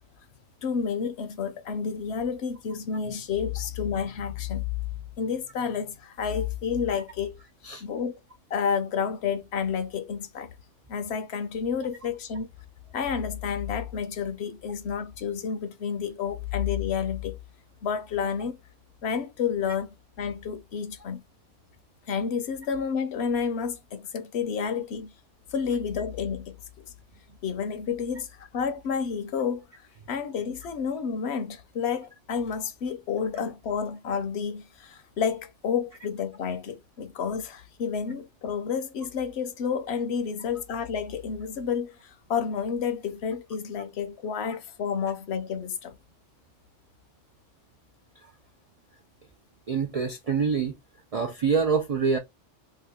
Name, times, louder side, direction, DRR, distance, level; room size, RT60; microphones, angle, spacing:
voice 1, 0.6-4.6 5.2-7.4 7.8-8.2 8.5-10.5 10.9-12.5 12.9-17.4 17.8-18.6 19.0-19.9 20.2-21.2 22.1-25.1 25.5-26.6 27.4-29.6 30.1-46.0, left 6 dB, 65° left, 0.8 m, -30 dB
voice 2, 49.7-50.8 51.1-52.2, right 5 dB, 65° right, 0.3 m, -26 dB
2.8 x 2.4 x 3.4 m
omnidirectional pair, 1.3 m